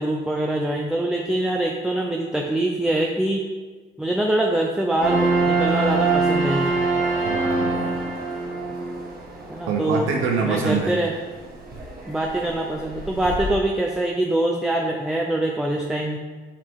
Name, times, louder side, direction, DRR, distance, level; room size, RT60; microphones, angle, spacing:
voice 1, 0.0-3.4 4.0-6.8 9.5-10.1 10.4-11.1 12.1-16.2, right 1 dB, 5° right, 0 dB, 0.6 m, -24 dB
sound 1, 5.0-13.5, right 3 dB, 50° right, 1.6 m, -25 dB
voice 2, 7.2-7.9 8.6-8.7 9.7-11.0, right 5 dB, 85° right, 1 dB, 0.8 m, -25 dB
6.7 x 5.4 x 3.6 m, 1.4 s
cardioid pair, 90°, 20 cm